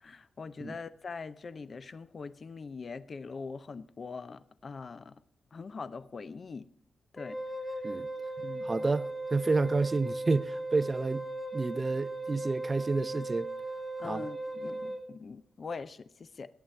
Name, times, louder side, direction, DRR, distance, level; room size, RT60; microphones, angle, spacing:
voice 1, 0.0-5.1 5.5-6.7 7.1-7.4 8.4-8.7 14.0-16.5, left 4 dB, 40° left, 0.5 m, -42 dB
Wind instrument woodwind instrument, 7.2-15.0, right 1 dB, 10° left, 2.0 m, -37 dB
voice 2, 8.6-11.3 11.5-13.5 14.0-14.2, right 3 dB, 25° right, 0.4 m, -30 dB
20.0 x 8.8 x 3.2 m
wide cardioid pair, 125°, 0 cm